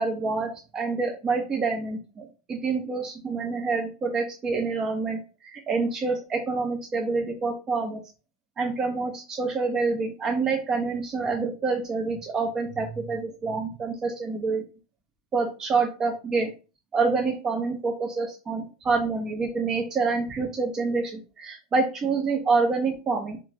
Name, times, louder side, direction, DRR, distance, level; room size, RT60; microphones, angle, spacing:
voice 1, 0.0-8.0 8.6-14.6 15.3-16.5 16.9-23.4, right 4 dB, 25° right, 1 dB, 0.4 m, -27 dB
2.9 x 2.3 x 2.5 m, 0.33 s
supercardioid pair, 145°, 2 cm